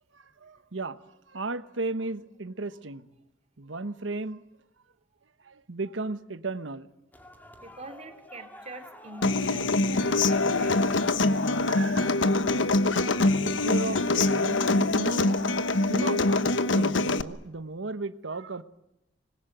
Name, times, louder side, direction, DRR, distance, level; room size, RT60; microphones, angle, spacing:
voice 1, 0.1-1.0 1.3-3.1 3.6-4.4 5.4-6.9 11.6-12.2 13.2-15.4 15.9-16.3 16.7-18.6, right 2 dB, 85° right, 1.1 m, -34 dB
sound 1, 7.1-17.6, left 1 dB, 10° left, 2.5 m, -50 dB
voice 2, 7.6-11.1, right 2 dB, 35° right, 2.8 m, -45 dB
Human voice / Acoustic guitar, 9.2-17.2, left 2 dB, 80° left, 1.1 m, -24 dB
26.0 x 21.0 x 9.2 m
head